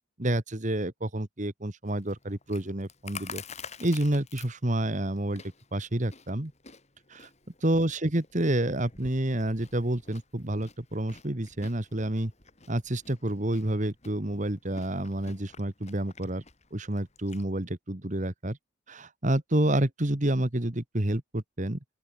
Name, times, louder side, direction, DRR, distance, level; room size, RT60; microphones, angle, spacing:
voice 1, 0.2-3.4 3.8-6.5 7.1-7.3 7.6-12.3 12.7-16.4 16.7-18.6 18.9-21.8, right 1 dB, 35° right, 1.6 m, -29 dB
Chewing mastication, 1.8-17.4, left 5 dB, 30° left, 3.4 m, -49 dB
open air
head